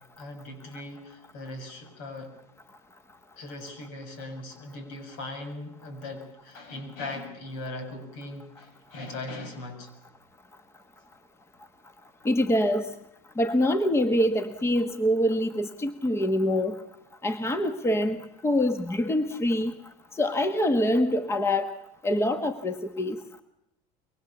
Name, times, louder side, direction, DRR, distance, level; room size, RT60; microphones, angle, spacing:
voice 1, 0.2-2.3 3.4-9.9, left 2 dB, 75° left, 7 dB, 7.0 m, -39 dB
voice 2, 12.2-12.9 13.4-16.8 17.2-19.7 20.1-21.7 22.0-23.2, left 1 dB, 15° left, 9 dB, 1.5 m, -25 dB
24.0 x 23.5 x 7.3 m, 0.79 s
supercardioid pair, 115°, 16 cm